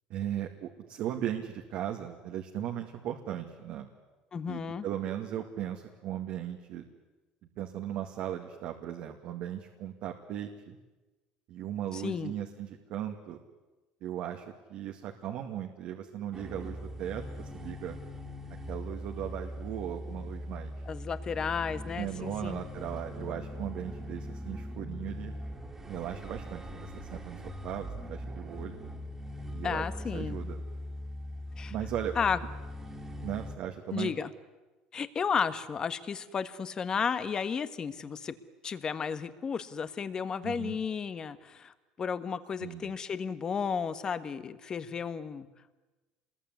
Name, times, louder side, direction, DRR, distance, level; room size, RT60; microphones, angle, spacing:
voice 1, 0.1-3.9 4.5-6.8 7.6-10.8 11.5-13.4 14.0-18.0 18.7-20.7 22.0-25.3 25.8-28.8 29.5-29.8 30.1-30.6 31.7-32.1 33.2-34.1 40.4-40.8 42.6-42.9, right 11 dB, 60° right, 3 dB, 2.1 m, -37 dB
voice 2, 4.3-4.8 11.9-12.3 20.9-22.6 29.6-30.4 31.6-31.7 32.1-32.4 33.9-34.3 34.9-38.3 38.6-45.5, left 6 dB, 30° left, 13 dB, 1.4 m, -33 dB
sound 1, 16.3-33.6, left 1 dB, 15° right, 2.7 m, -41 dB
27.0 x 21.5 x 9.6 m, 1.2 s
cardioid pair, 145°, 3 cm